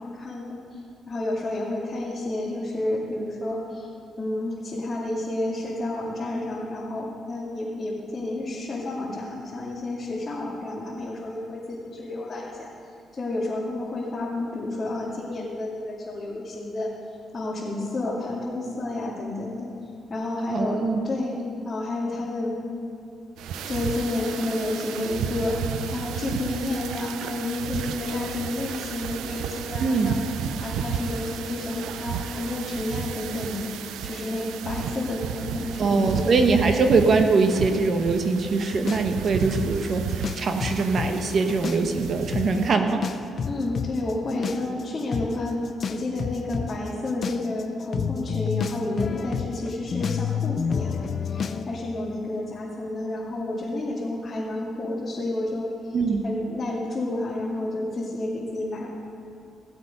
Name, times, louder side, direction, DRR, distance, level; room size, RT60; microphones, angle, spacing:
voice 1, 0.0-3.9 4.2-12.7 13.1-16.9 17.3-19.7 20.1-21.4 21.6-22.6 23.6-30.2 30.5-33.7 34.0-36.4 43.5-45.6 45.9-56.0 56.2-58.9, left 2 dB, 35° left, -7 dB, 2.5 m, -30 dB
voice 2, 20.5-21.1 29.8-30.2 35.8-43.0 55.9-56.3, right 4 dB, 50° right, 5 dB, 1.3 m, -22 dB
sound 1, 23.4-42.7, right 7 dB, 85° right, 0.5 m, -33 dB
sound 2, 38.9-41.1 41.5-42.1 42.3-42.5 43.0-51.6, left 7 dB, 50° left, 0.6 m, -29 dB
16.5 x 8.0 x 5.5 m, 2.4 s
cardioid pair, 90°, 0 cm